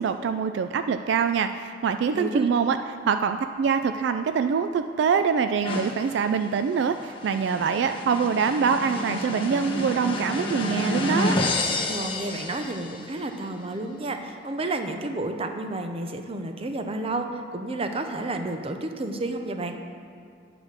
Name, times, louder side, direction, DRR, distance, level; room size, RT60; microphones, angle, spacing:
voice 1, 0.0-2.8 3.1-11.4, right 6 dB, 65° right, 9 dB, 0.3 m, -24 dB
voice 2, 2.1-2.5 11.9-19.8, right 2 dB, 30° right, 6 dB, 0.6 m, -31 dB
sound 1, 5.6-13.2, left 2 dB, 30° left, 1.1 m, -30 dB
9.4 x 4.9 x 6.4 m, 2.5 s
head